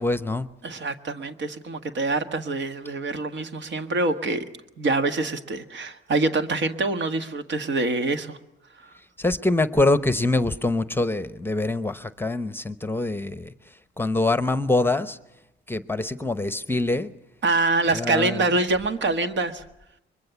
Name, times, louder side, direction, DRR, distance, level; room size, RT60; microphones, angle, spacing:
voice 1, 0.0-0.5 9.2-13.5 14.0-15.2 15.7-17.1 17.9-18.4, left 2 dB, 10° left, 13 dB, 0.9 m, -24 dB
voice 2, 0.6-4.4 4.8-8.4 8.8-8.9 17.4-19.6, right 3 dB, 65° right, 8 dB, 1.7 m, -25 dB
23.5 x 21.5 x 7.1 m, 0.89 s
cardioid pair, 90°, 20 cm